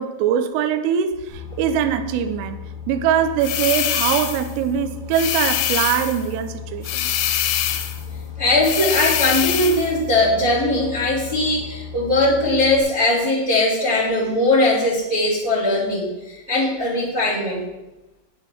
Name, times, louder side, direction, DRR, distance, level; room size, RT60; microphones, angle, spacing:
voice 1, 0.0-2.6 2.9-7.2, right 8 dB, 80° right, 8 dB, 3.2 m, -22 dB
Boat Water vehicle, 1.3-12.8, left 7 dB, 30° right, 2.5 m, -36 dB
sound 1, 3.4-4.5 5.1-6.2 6.8-8.0 8.6-9.9, left 11 dB, 85° left, 3.4 m, -23 dB
voice 2, 8.1-17.6, left 2 dB, 65° right, -9 dB, 0.8 m, -20 dB
10.0 x 8.7 x 4.7 m, 1.0 s
omnidirectional pair, 5.9 m